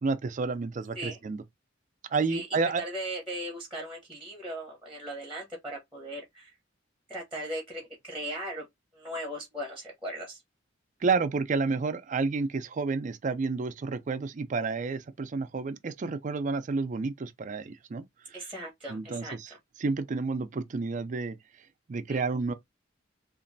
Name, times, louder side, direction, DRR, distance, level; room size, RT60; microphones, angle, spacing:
voice 1, 0.0-1.4 2.1-2.8 11.0-18.4 18.9-19.5 19.8-21.4 21.9-22.5, right 4 dB, 40° right, 0.4 m, -30 dB
voice 2, 2.8-6.5 7.1-8.7 8.9-10.4 18.3-19.4 22.1-22.2, right 1 dB, 5° right, 0.9 m, -38 dB
3.0 x 2.5 x 2.6 m
head